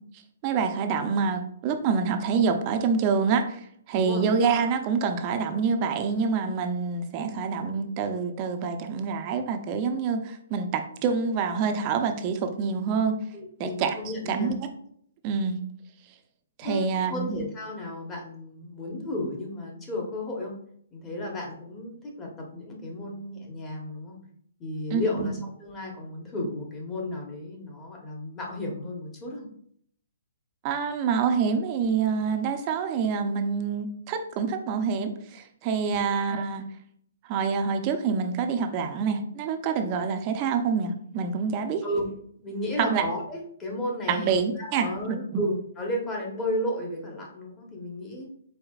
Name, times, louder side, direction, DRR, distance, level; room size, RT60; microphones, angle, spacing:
voice 1, 0.4-13.2 13.6-14.6 15.2-15.6 16.6-17.4 24.9-25.3 30.6-36.6 37.2-41.8 42.8-43.0 44.1-45.4, right 5 dB, 30° right, 6 dB, 0.5 m, -26 dB
voice 2, 13.3-14.5 16.6-20.5 20.9-24.2 24.6-29.5 35.9-36.0 41.8-42.0 42.4-48.3, left 1 dB, 15° left, -1 dB, 1.0 m, -33 dB
4.7 x 4.3 x 2.4 m, 0.65 s
hypercardioid pair, 155°, 0 cm